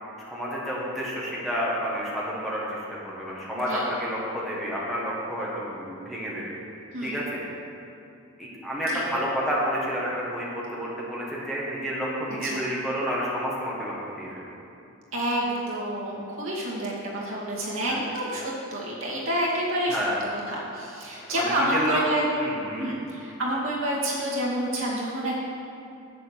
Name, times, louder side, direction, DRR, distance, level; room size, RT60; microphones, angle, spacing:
voice 1, 0.2-6.6 7.0-7.4 8.4-14.4 17.9-18.0 19.9-20.2 21.3-22.0 22.4-22.9, equal, ahead, -7 dB, 1.5 m, -30 dB
voice 2, 6.9-7.3 8.9-9.0 12.4-12.6 15.1-22.2 22.8-25.4, right 1 dB, 65° right, -5 dB, 2.2 m, -28 dB
8.3 x 6.9 x 6.5 m, 2.6 s
head